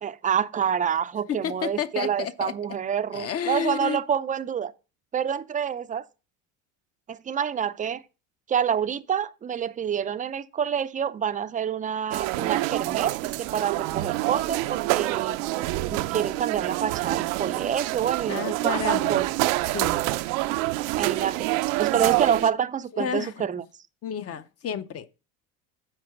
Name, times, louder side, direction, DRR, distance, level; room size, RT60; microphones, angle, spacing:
voice 1, 0.0-4.7 5.1-6.1 7.1-8.0 8.5-15.4 15.8-19.3 20.9-21.5 21.8-23.6, right 8 dB, 20° right, 0.5 m, -27 dB
voice 2, 1.3-2.5 3.1-4.0 18.3-19.2 19.6-20.1 22.9-23.5 24.0-25.2, left 8 dB, 35° left, 0.7 m, -31 dB
sound 1, 12.1-22.5, right 19 dB, 75° right, 0.6 m, -27 dB
7.8 x 4.7 x 5.9 m
supercardioid pair, 100°, 41 cm